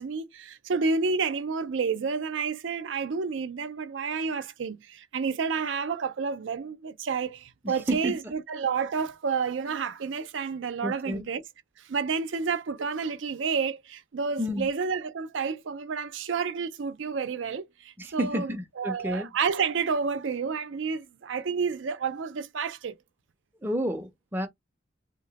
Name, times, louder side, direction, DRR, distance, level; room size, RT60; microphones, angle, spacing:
voice 1, 0.0-11.4 11.9-22.9, right 5 dB, 85° right, 0.5 m, -30 dB
voice 2, 7.6-8.3 10.8-11.3 14.4-14.7 18.0-19.3 23.6-24.5, equal, 10° right, 0.5 m, -30 dB
2.8 x 2.1 x 3.9 m
head